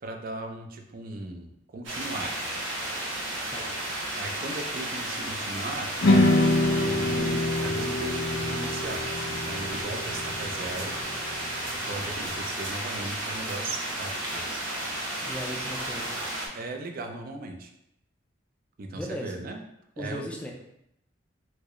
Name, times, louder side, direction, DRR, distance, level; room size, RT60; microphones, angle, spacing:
voice 1, 0.0-2.4 4.2-5.9 6.8-11.0 11.8-14.7 16.5-17.7 18.8-19.6 20.0-20.2, right 2 dB, 50° right, 4 dB, 0.4 m, -38 dB
sound 1, 1.8-16.5, right 1 dB, 85° right, 0.9 m, -33 dB
sound 2, 6.0-12.3, left 1 dB, 90° left, 0.5 m, -26 dB
voice 2, 15.2-16.2 18.9-19.3 20.0-20.5, equal, 5° left, -1 dB, 0.4 m, -36 dB
4.5 x 2.0 x 3.0 m, 0.80 s
head